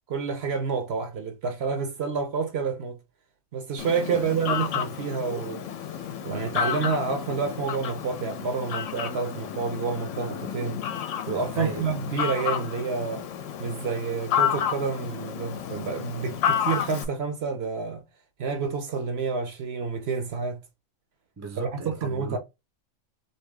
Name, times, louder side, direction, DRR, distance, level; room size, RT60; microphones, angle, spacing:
voice 1, 0.1-3.0 3.5-5.7 6.2-10.8 11.3-13.3 13.6-18.0 18.4-20.6 21.6-21.7 22.0-22.4, right 5 dB, 60° right, 0.8 m, -29 dB
Fowl, 3.8-17.0, left 9 dB, 70° left, 0.9 m, -31 dB
voice 2, 11.5-12.0 21.4-22.4, right 2 dB, 20° right, 0.4 m, -37 dB
2.9 x 2.7 x 3.3 m
omnidirectional pair, 1.4 m